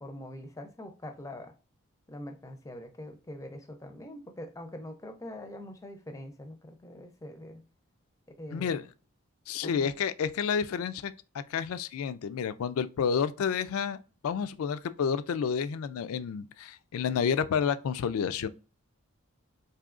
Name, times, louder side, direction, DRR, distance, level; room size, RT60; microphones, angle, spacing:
voice 1, 0.0-1.5 2.1-7.6 8.4-8.8 9.6-10.0, left 1 dB, 15° left, 0.5 m, -43 dB
voice 2, 8.5-8.8 9.5-14.0 14.2-18.5, left 7 dB, 75° left, 0.3 m, -30 dB
4.7 x 2.7 x 2.5 m
head